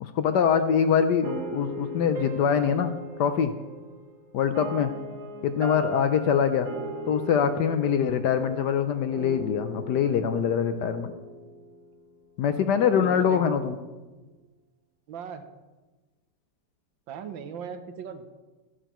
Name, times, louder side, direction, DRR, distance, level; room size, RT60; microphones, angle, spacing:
voice 1, 0.0-2.9 3.2-3.5 4.3-4.9 5.4-6.7 7.1-11.1 12.4-13.8, left 7 dB, 70° left, 9 dB, 1.1 m, -24 dB
sound 1, 1.2-12.3, right 1 dB, 55° right, 1.2 m, -39 dB
voice 2, 12.9-13.5 15.1-15.5 17.1-18.3, right 7 dB, 75° right, 9 dB, 1.5 m, -38 dB
13.0 x 11.0 x 3.0 m, 1.2 s
omnidirectional pair, 2.1 m